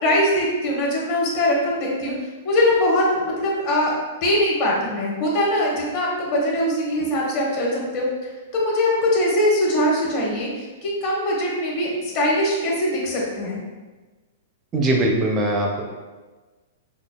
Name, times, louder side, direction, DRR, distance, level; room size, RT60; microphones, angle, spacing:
voice 1, 0.0-2.1 2.4-3.9 4.2-13.6, left 1 dB, 40° left, -4 dB, 1.0 m, -22 dB
voice 2, 14.7-15.8, right 1 dB, 20° right, 0 dB, 0.4 m, -21 dB
5.2 x 2.3 x 2.2 m, 1.3 s
hypercardioid pair, 150°, 0 cm